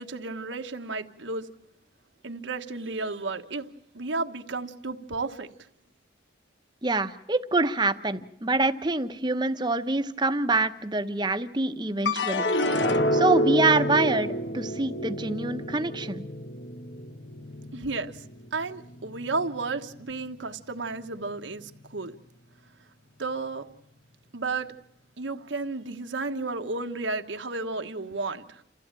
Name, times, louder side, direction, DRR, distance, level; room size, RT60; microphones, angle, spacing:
voice 1, 0.0-1.5 2.2-3.7 3.9-5.5 17.7-18.2 18.5-22.2 23.2-23.7 24.3-24.7 25.2-28.6, right 3 dB, 80° right, 1.4 m, -33 dB
voice 2, 6.8-12.5 13.1-16.3, right 3 dB, 25° right, 0.9 m, -26 dB
sound 1, 12.1-18.5 18.9-19.6, left 1 dB, 70° left, 1.2 m, -28 dB
28.5 x 15.0 x 8.9 m
head